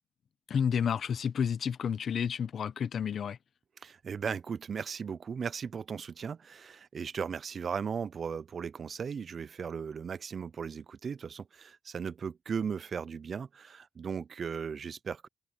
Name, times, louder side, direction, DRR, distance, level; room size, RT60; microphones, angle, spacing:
voice 1, 0.5-3.4, left 7 dB, 65° left, 1.1 m, -30 dB
voice 2, 3.8-15.3, right 6 dB, 55° right, 0.6 m, -37 dB
cardioid pair, 70°, 0 cm